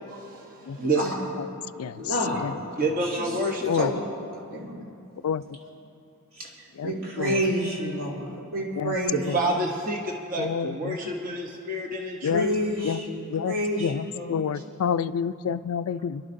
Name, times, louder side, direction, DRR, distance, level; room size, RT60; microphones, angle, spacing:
voice 1, 0.1-1.1 2.8-3.7 5.6-5.7 9.1-12.6 14.3-14.6, right 1 dB, 40° right, 0 dB, 0.9 m, -29 dB
voice 2, 0.9-1.3 1.9-2.6 3.0-3.3 3.7-4.0 4.5-4.8 6.3-6.5 6.8-9.6 12.2-14.3, equal, 70° right, -5 dB, 3.0 m, -29 dB
voice 3, 6.8-7.4 8.8-9.0 9.3-9.4 10.4-11.0 12.2-12.5 12.8-13.0 13.3-13.5 13.8-16.2, left 7 dB, 90° left, 14 dB, 0.4 m, -28 dB
28.0 x 11.5 x 2.6 m, 2.7 s
head